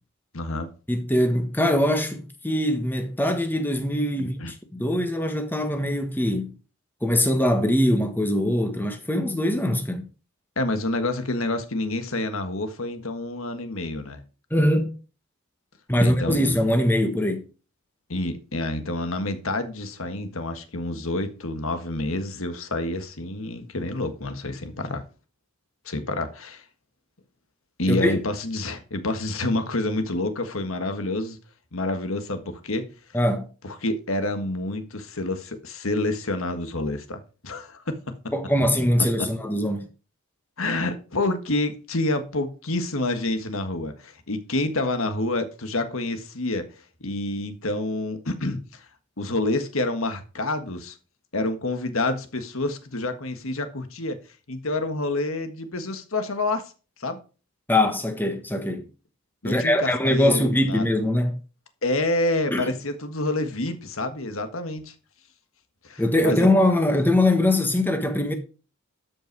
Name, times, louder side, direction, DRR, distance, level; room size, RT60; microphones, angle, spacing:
voice 1, 0.3-0.7 4.2-4.5 10.6-14.2 16.0-16.4 18.1-25.0 25.9-26.6 27.8-31.4 31.7-32.9 33.6-38.0 39.0-39.3 40.6-46.6 47.0-48.9 49.2-51.0 51.3-54.2 54.5-56.6 57.0-57.2 59.4-60.9 61.8-64.9 65.8-66.5, left 2 dB, 70° left, 1.6 m, -28 dB
voice 2, 0.9-4.3 4.7-6.5 7.0-10.1 14.5-15.0 15.9-17.4 27.9-28.2 33.1-33.5 38.3-39.9 57.7-58.9 59.4-61.4 62.5-62.7 66.0-68.3, left 1 dB, 10° left, 1.4 m, -22 dB
12.5 x 5.6 x 4.7 m
head